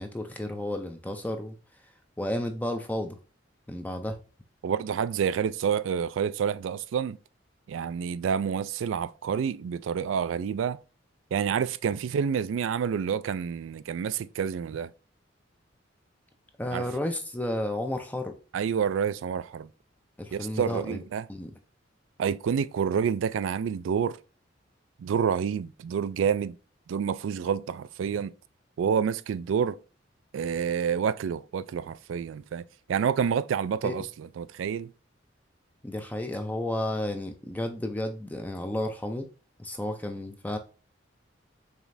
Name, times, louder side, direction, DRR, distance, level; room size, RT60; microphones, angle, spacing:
voice 1, 0.0-1.6 2.2-3.2 3.7-4.2 16.6-18.3 20.2-21.0 21.3-21.5 33.8-33.9 35.8-39.3 39.6-40.6, left 1 dB, 10° left, 0.4 m, -32 dB
voice 2, 4.6-7.2 7.7-10.8 11.3-14.9 16.7-16.9 18.5-19.7 20.3-21.3 22.2-24.2 25.0-26.6 26.9-28.3 28.8-29.8 30.3-34.9, right 7 dB, 80° right, 0.3 m, -28 dB
5.0 x 3.2 x 2.6 m
head